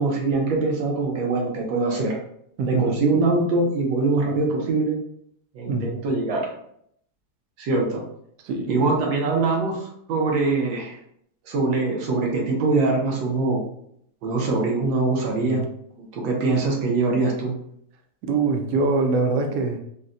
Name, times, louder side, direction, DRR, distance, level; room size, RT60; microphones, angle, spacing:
voice 1, 0.0-2.2 2.7-5.0 5.5-6.5 7.6-8.0 8.7-11.0 11.5-13.6 14.2-15.6 16.0-17.6, right 3 dB, 90° right, 0 dB, 1.5 m, -23 dB
voice 2, 2.6-3.0 5.7-5.9 8.4-8.9 15.4-15.6 18.3-19.8, right 3 dB, 75° right, 4 dB, 1.1 m, -24 dB
3.9 x 2.1 x 2.4 m, 0.70 s
omnidirectional pair, 2.0 m